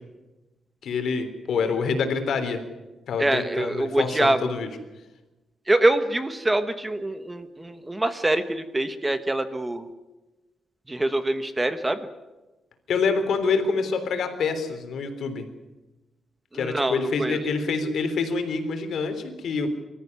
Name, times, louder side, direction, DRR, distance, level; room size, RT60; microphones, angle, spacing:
voice 1, 0.8-2.6 3.1-4.7 12.9-15.5 16.5-19.7, left 4 dB, 65° left, 7 dB, 3.5 m, -26 dB
voice 2, 3.2-4.5 5.7-9.9 10.9-12.1 16.5-17.4, right 1 dB, 10° right, 10 dB, 1.2 m, -25 dB
25.0 x 14.0 x 9.5 m, 1.1 s
wide cardioid pair, 150°, 0 cm